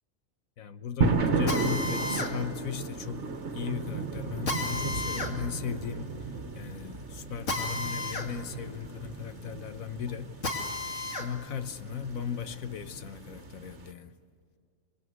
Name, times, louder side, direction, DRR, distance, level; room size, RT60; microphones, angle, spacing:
voice 1, 0.6-3.2 3.5-6.2 6.5-10.4 11.2-14.1, left 8 dB, 90° left, 1.4 m, -37 dB
sound 1, 1.0-13.9, right 4 dB, 60° right, 1.7 m, -34 dB
Drill, 1.5-11.3 11.7-13.4, left 2 dB, 65° left, 2.5 m, -36 dB
26.5 x 22.5 x 9.5 m
omnidirectional pair, 1.4 m